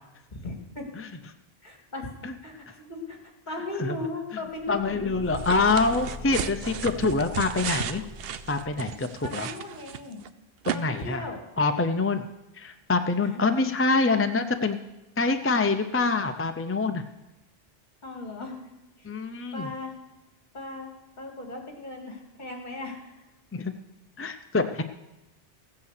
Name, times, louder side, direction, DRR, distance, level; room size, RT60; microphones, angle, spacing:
voice 1, 0.3-0.9 1.6-2.1 2.4-3.2 3.5-5.1 9.2-10.2 10.7-11.4 13.3-13.4 18.0-18.7 19.0-19.1 19.5-20.0 20.5-20.9 21.2-23.3, left 2 dB, 40° left, 1 dB, 2.4 m, -37 dB
Car / Engine, 4.5-9.0, left 1 dB, 30° right, 4.4 m, -42 dB
voice 2, 4.7-8.0 8.5-9.5 10.7-11.2 11.6-12.3 12.5-14.8 15.2-17.0 19.0-19.7 23.5-23.7 24.2-24.8, left 3 dB, 20° left, 7 dB, 0.4 m, -25 dB
sound 1, 5.3-10.3 10.6-10.8, right 9 dB, 65° right, 0.8 m, -34 dB
15.5 x 8.6 x 6.6 m, 0.97 s
omnidirectional pair, 1.2 m